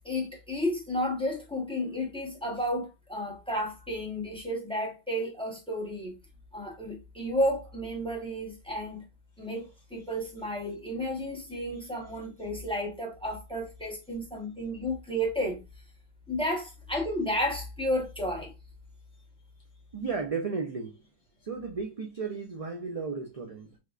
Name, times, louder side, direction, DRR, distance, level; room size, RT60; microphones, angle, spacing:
voice 1, 0.0-6.1 6.5-9.0 9.4-15.6 16.3-18.5, equal, 5° left, 1.0 m, -32 dB
voice 2, 19.9-21.1 21.4-23.8, right 4 dB, 45° right, 0.4 m, -34 dB
3.6 x 3.2 x 2.3 m
omnidirectional pair, 1.3 m